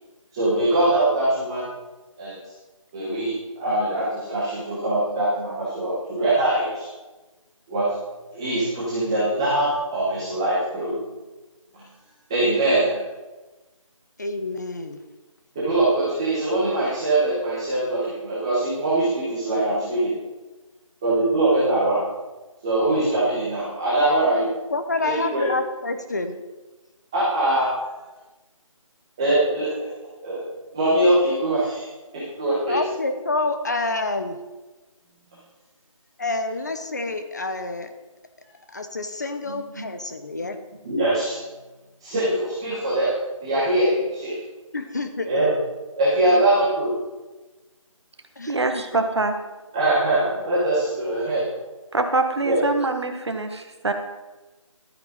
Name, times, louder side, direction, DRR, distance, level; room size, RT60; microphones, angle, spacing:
voice 1, 0.3-1.7 2.2-2.3 2.9-3.3 3.6-6.9 7.7-7.9 8.3-11.0 11.7-11.8 12.3-13.0 15.5-20.1 21.0-22.0 22.6-24.5 25.0-25.5 27.1-27.7 29.2-29.7 30.2-30.4 30.7-31.9 32.1-32.8 39.5-39.9 40.8-41.4 42.0-43.1 43.4-44.3 45.3-45.5 46.0-46.9 49.7-51.5 52.4-52.6, right 1 dB, 10° right, 1.3 m, -22 dB
voice 2, 14.2-15.0 24.7-26.4 32.7-34.4 36.2-37.9 38.7-40.6 44.7-45.6 46.2-46.4 48.4-48.8, left 2 dB, 30° left, 0.8 m, -28 dB
voice 3, 48.5-49.3 51.9-53.9, right 3 dB, 50° right, 1.4 m, -24 dB
12.5 x 9.2 x 4.0 m
figure-of-eight pair, 175°, 17 cm